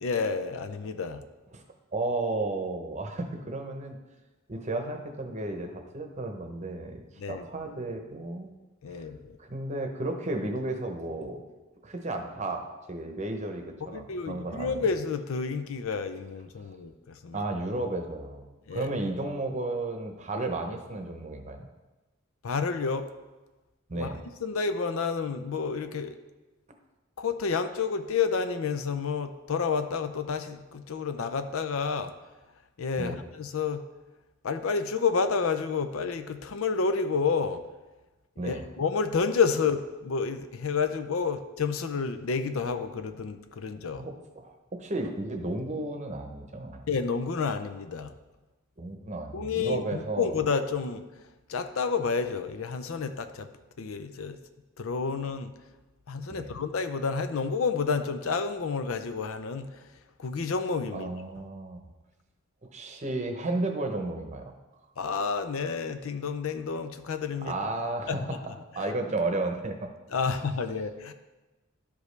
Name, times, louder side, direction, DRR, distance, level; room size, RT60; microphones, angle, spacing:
voice 1, 0.0-1.2 7.2-7.5 8.8-9.4 13.9-17.4 18.7-18.9 22.4-23.1 23.9-24.1 24.4-26.2 27.2-32.1 32.8-33.8 34.4-37.6 38.4-44.0 46.9-48.1 49.3-51.0 51.5-53.5 53.8-54.4 54.8-55.5 56.1-59.8 60.2-61.1 65.0-67.5 68.1-68.4 70.1-71.1, left 5 dB, 75° left, 10 dB, 0.5 m, -30 dB
voice 2, 1.9-4.0 4.5-8.5 8.9-9.0 9.4-11.4 11.8-14.8 17.3-18.5 18.7-21.7 23.9-24.2 33.0-33.2 38.4-38.7 44.0-46.8 48.8-50.4 56.3-56.6 60.9-61.8 62.6-64.5 67.4-68.4 68.7-69.9, right 2 dB, 35° right, 4 dB, 0.8 m, -33 dB
11.5 x 5.1 x 3.2 m, 1.1 s
head